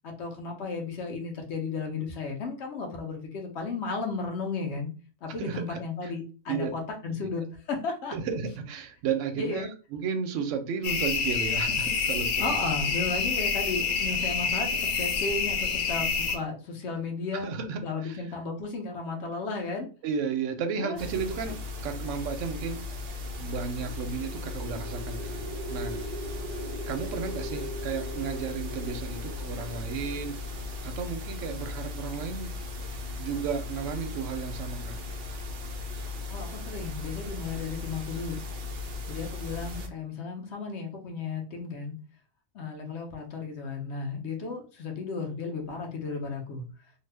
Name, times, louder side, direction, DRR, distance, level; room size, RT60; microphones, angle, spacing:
voice 1, 0.0-4.9 5.2-8.2 9.4-9.7 12.4-19.9 20.7-21.0 21.5-21.6 36.3-38.4 39.1-41.9 42.5-46.6, left 4 dB, 55° left, 1.0 m, -34 dB
voice 2, 5.4-5.8 6.5-6.7 7.2-7.3 8.1-12.5 17.3-18.2 20.0-22.8 23.4-26.0 26.9-30.3 30.8-32.5 32.9-35.0 35.3-35.4, right 6 dB, 65° right, 0.8 m, -33 dB
sound 1, 10.8-16.4, left 5 dB, 75° left, 1.2 m, -27 dB
sound 2, 21.0-39.9, left 3 dB, 85° right, 0.4 m, -37 dB
sound 3, 23.4-31.4, right 1 dB, 20° left, 1.1 m, -41 dB
2.7 x 2.3 x 3.3 m
omnidirectional pair, 1.6 m